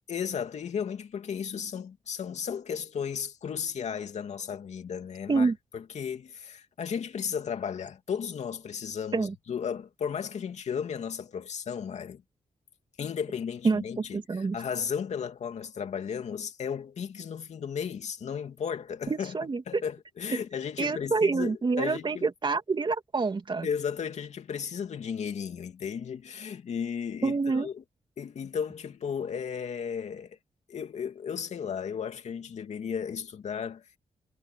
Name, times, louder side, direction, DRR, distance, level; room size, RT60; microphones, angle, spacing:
voice 1, 0.1-12.2 13.0-19.3 19.7-22.2 23.6-27.8 28.2-30.4 30.7-34.0, left 7 dB, 70° left, 2.7 m, -34 dB
voice 2, 13.6-14.6 19.1-19.8 20.3-20.4 20.8-23.7 27.2-27.7, right 4 dB, 40° right, 2.7 m, -27 dB
cardioid pair, 80°, 12 cm